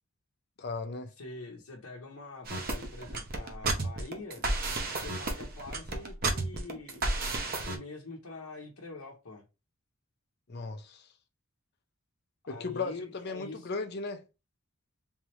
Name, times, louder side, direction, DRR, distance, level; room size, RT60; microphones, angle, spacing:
voice 1, 0.6-1.1 10.5-11.1 12.5-14.2, left 4 dB, 50° left, 0.6 m, -36 dB
voice 2, 1.2-4.4 4.9-7.1 7.6-9.4 12.4-13.7, left 3 dB, 75° left, 0.8 m, -45 dB
sound 1, 2.5-7.8, right 2 dB, 45° right, 0.8 m, -32 dB
3.6 x 3.1 x 3.0 m
head